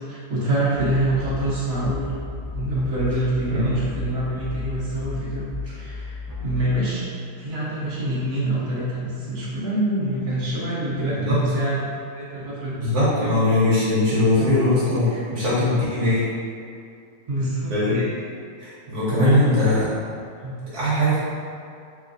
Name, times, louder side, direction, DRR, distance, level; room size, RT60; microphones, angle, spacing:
voice 1, 0.1-2.0 2.5-7.1 7.4-11.8 12.1-12.8 13.2-13.3 17.3-17.7 19.2-19.5 20.4-20.5, right 1 dB, 60° right, -8 dB, 1.4 m, -26 dB
sound 1, 0.7-6.6, left 4 dB, 15° right, 0.7 m, -34 dB
voice 2, 3.5-3.8 11.1-11.6 12.8-16.3 17.7-18.1 18.6-19.9 20.7-21.2, left 1 dB, 75° right, -10 dB, 1.5 m, -20 dB
3.9 x 3.2 x 2.6 m, 2.4 s
omnidirectional pair, 1.7 m